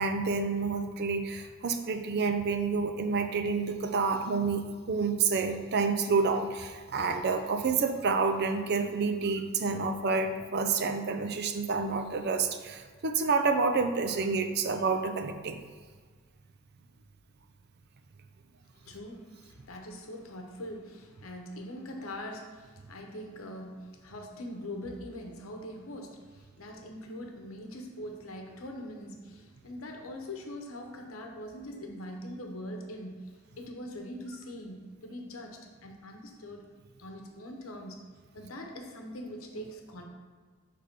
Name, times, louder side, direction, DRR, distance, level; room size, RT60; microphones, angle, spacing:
voice 1, 0.0-4.6 4.9-15.6, right 4 dB, 50° right, 7 dB, 0.5 m, -29 dB
voice 2, 18.8-36.7 37.0-38.0 38.3-40.0, left 1 dB, 90° left, 2 dB, 0.9 m, -42 dB
5.9 x 3.4 x 5.1 m, 1.5 s
head